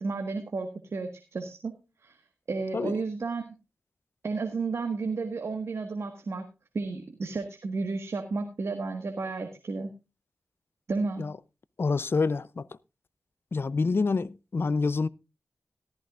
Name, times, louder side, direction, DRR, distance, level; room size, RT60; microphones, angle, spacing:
voice 1, 0.0-1.7 2.0-2.2 2.5-3.5 4.2-6.5 6.7-9.9 10.9-11.2, right 4 dB, 70° right, 1.6 m, -32 dB
voice 2, 11.8-12.7 13.5-15.1, left 4 dB, 55° left, 0.6 m, -27 dB
14.0 x 14.0 x 2.5 m
cardioid pair, 60°, 5 cm